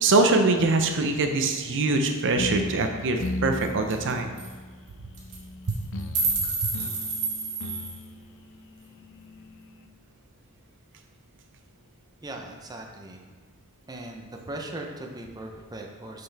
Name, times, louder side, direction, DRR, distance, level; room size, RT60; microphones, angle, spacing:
voice 1, 0.0-4.3 5.7-5.8 6.6-6.7, right 3 dB, 60° right, 5 dB, 0.6 m, -23 dB
sound 1, 2.4-9.9, left 1 dB, 60° left, 0.5 m, -37 dB
sound 2, 3.2-3.3 3.6-3.7 3.9-4.1 4.4-4.5 5.1-5.4 5.7-8.0, right 3 dB, 85° right, 1.5 m, -29 dB
voice 2, 12.2-13.3 13.9-16.2, right 1 dB, 15° right, 1 dB, 0.6 m, -39 dB
6.7 x 5.8 x 3.4 m, 1.5 s
head